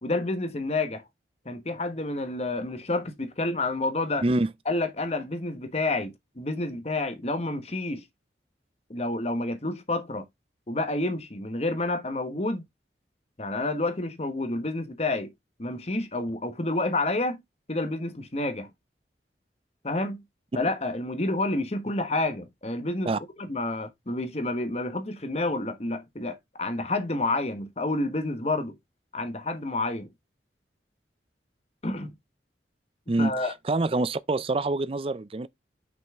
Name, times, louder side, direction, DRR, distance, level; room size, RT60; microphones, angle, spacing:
voice 1, 0.0-1.0 1.4-4.2 4.7-8.0 8.9-10.2 10.7-12.6 13.4-15.3 15.6-17.4 17.7-18.7 19.8-20.2 20.5-23.1 23.4-28.7 29.1-30.1 31.8-32.2 33.2-33.5, left 2 dB, 35° left, 1.2 m, -29 dB
voice 2, 33.1-35.5, right 2 dB, 30° right, 0.4 m, -26 dB
6.2 x 5.5 x 3.6 m
head